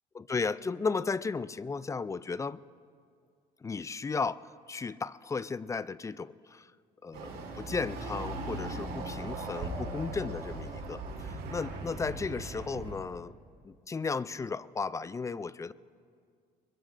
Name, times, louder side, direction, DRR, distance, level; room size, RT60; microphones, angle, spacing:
voice 1, 0.1-2.6 3.6-6.7 7.0-13.3 13.6-15.7, left 4 dB, 20° left, 17 dB, 0.3 m, -35 dB
Chatter / Car passing by / Motorcycle, 7.1-13.0, right 2 dB, 70° right, 4.5 m, -39 dB
24.0 x 21.5 x 2.6 m, 2.2 s
cardioid pair, 110°, 17 cm